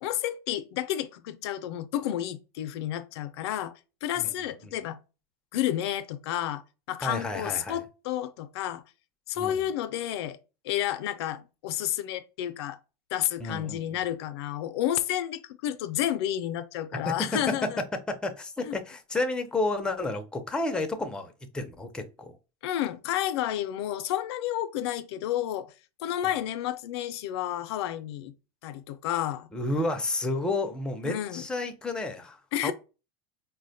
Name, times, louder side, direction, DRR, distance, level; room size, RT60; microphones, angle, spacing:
voice 1, 0.0-3.7 4.0-5.0 5.5-6.6 6.9-8.8 9.3-10.4 10.6-12.8 13.1-17.8 18.6-18.7 22.6-25.7 26.0-28.3 28.6-29.5 31.0-31.5 32.5-32.7, left 12 dB, 80° left, 0.4 m, -31 dB
voice 2, 7.0-7.8 9.4-9.6 13.4-14.0 17.1-17.4 18.1-22.4 29.5-32.7, left 2 dB, 5° left, 0.4 m, -31 dB
4.3 x 2.1 x 2.6 m
supercardioid pair, 135°, 13 cm